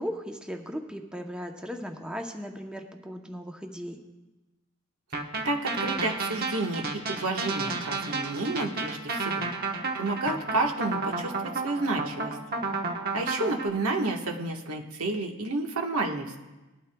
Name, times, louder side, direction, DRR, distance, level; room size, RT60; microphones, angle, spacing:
voice 1, 0.0-4.0 13.4-13.6, equal, 5° right, 3 dB, 0.7 m, -37 dB
sound 1, 5.1-13.7, right 3 dB, 45° right, 1.1 m, -32 dB
voice 2, 5.4-9.5 10.0-12.4 13.1-16.4, right 2 dB, 85° right, 2 dB, 1.3 m, -30 dB
19.5 x 12.0 x 2.3 m, 1.1 s
head